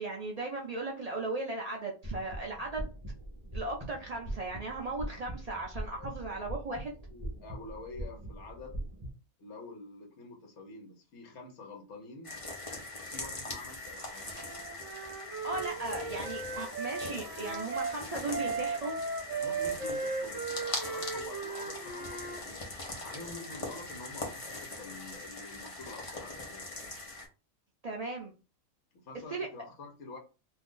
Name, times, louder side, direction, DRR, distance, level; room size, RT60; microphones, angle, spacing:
voice 1, 0.0-2.9 3.5-6.9 15.4-19.0 27.8-28.3 29.3-29.5, right 2 dB, 85° right, 0 dB, 0.3 m, -37 dB
sound 1, 2.0-9.1, right 1 dB, 25° right, 0.7 m, -41 dB
voice 2, 6.0-6.4 7.1-8.8 9.4-12.4 13.1-14.4 19.4-22.6 23.0-26.7 28.9-30.2, left 3 dB, 60° left, 1 dB, 1.1 m, -47 dB
sound 2, 12.2-27.3, left 2 dB, 35° left, 0.6 m, -42 dB
Wind instrument woodwind instrument, 14.3-17.9 18.3-22.4, right 4 dB, 65° right, 1.1 m, -37 dB
2.7 x 2.5 x 3.6 m, 0.33 s
omnidirectional pair, 1.4 m